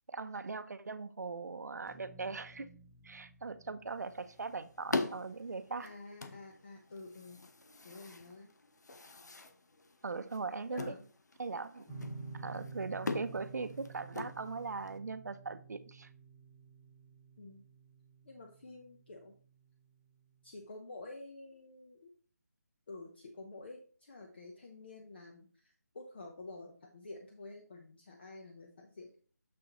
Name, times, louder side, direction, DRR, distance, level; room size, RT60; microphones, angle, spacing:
voice 1, 0.1-2.7 3.0-6.0 10.0-11.0 11.4-11.8 12.3-16.1, right 4 dB, 75° right, 12 dB, 0.7 m, -40 dB
sound 1, 1.9-6.5, right 2 dB, 15° left, 0.9 m, -61 dB
sound 2, 3.9-15.0, left 3 dB, 85° left, 0.9 m, -43 dB
voice 2, 5.8-7.4 7.8-8.5 10.7-11.0 17.4-17.6 18.2-19.4 20.4-22.1 22.9-29.2, left 2 dB, 35° left, 2 dB, 0.8 m, -50 dB
sound 3, 11.9-19.1, right 4 dB, 5° right, 1.4 m, -50 dB
6.8 x 6.3 x 3.0 m, 0.42 s
hypercardioid pair, 175°, 9 cm